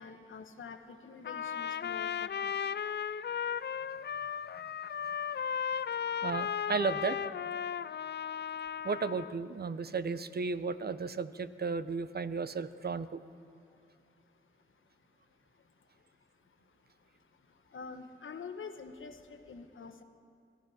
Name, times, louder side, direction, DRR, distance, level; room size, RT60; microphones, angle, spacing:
voice 1, 0.0-2.5 17.7-20.0, left 5 dB, 70° left, 7 dB, 1.2 m, -46 dB
Trumpet, 1.2-9.3, left 8 dB, 55° left, 0.4 m, -35 dB
voice 2, 6.2-7.2 8.8-13.2, right 5 dB, 50° right, 14 dB, 0.8 m, -34 dB
22.5 x 14.0 x 4.3 m, 2.6 s
cardioid pair, 45°, 21 cm